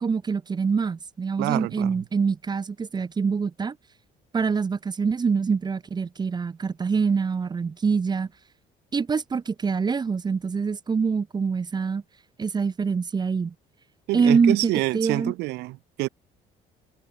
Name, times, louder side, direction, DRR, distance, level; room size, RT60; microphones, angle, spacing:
voice 1, 0.0-3.8 4.3-8.3 8.9-12.0 12.4-13.5 14.1-15.3, right 5 dB, 25° right, 0.8 m, -25 dB
voice 2, 1.4-2.0 14.1-16.1, right 20 dB, 80° right, 0.5 m, -27 dB
cardioid pair, 110°, 17 cm